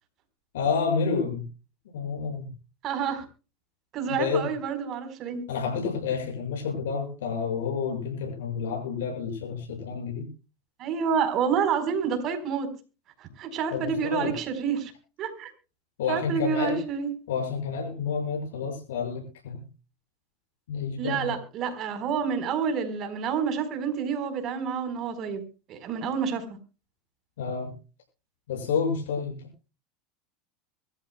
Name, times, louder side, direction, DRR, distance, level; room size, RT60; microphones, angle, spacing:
voice 1, 0.5-1.4 1.9-2.5 4.1-4.5 5.5-10.3 13.7-14.3 16.0-16.8 17.3-19.7 20.7-21.3 27.4-27.7 28.5-29.5, left 5 dB, 85° left, 1 dB, 6.3 m, -29 dB
voice 2, 2.8-3.2 3.9-5.4 10.8-12.7 13.2-14.9 15.2-15.5 16.1-17.1 21.0-25.4 25.7-26.4, right 6 dB, 45° right, 8 dB, 4.1 m, -28 dB
24.0 x 13.5 x 2.2 m, 0.32 s
supercardioid pair, 105°, 0 cm